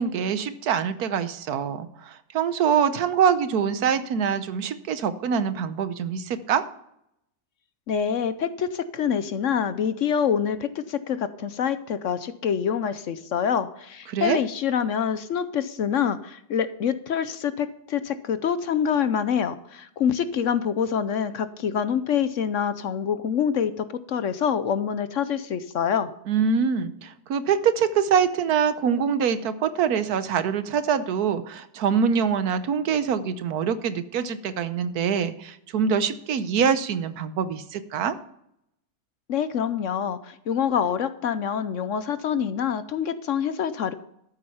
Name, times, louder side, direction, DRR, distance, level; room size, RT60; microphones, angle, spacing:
voice 1, 0.0-6.6 14.1-14.4 26.3-38.2, right 7 dB, 75° right, 12 dB, 1.4 m, -24 dB
voice 2, 7.9-26.1 39.3-43.9, left 8 dB, 60° left, 12 dB, 0.9 m, -26 dB
13.0 x 8.0 x 5.6 m, 0.76 s
omnidirectional pair, 1.6 m